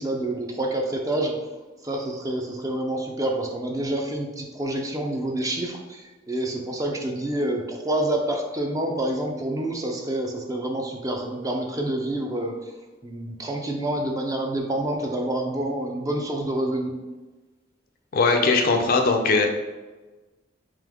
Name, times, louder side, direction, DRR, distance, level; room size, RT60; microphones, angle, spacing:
voice 1, 0.0-1.4 1.8-12.6 13.0-16.9, right 1 dB, 20° right, 2 dB, 0.4 m, -27 dB
voice 2, 18.1-19.5, left 3 dB, 50° left, 4 dB, 0.4 m, -20 dB
3.5 x 2.9 x 3.5 m, 1.2 s
head